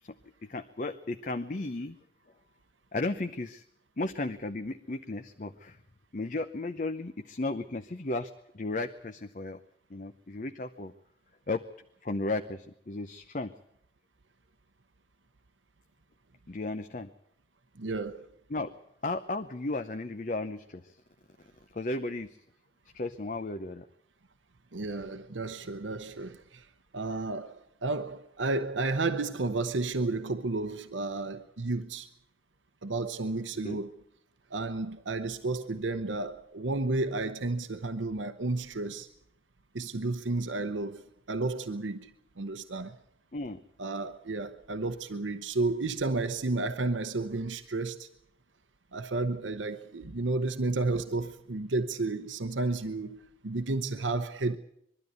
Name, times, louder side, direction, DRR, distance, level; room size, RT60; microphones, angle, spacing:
voice 1, 0.4-2.0 2.9-3.6 4.0-5.8 6.1-9.6 9.9-10.9 11.5-11.6 12.0-13.5 16.5-17.1 18.5-18.7 19.0-21.0 21.7-22.4 22.9-23.9 33.6-33.8 43.3-43.6, left 2 dB, 45° left, 0.7 m, -34 dB
voice 2, 17.8-18.3 24.7-26.7 26.9-32.1 32.8-33.9 34.5-39.1 39.7-43.0 43.8-48.1 48.9-54.6, right 3 dB, 90° right, 0.9 m, -32 dB
22.0 x 13.0 x 9.4 m
head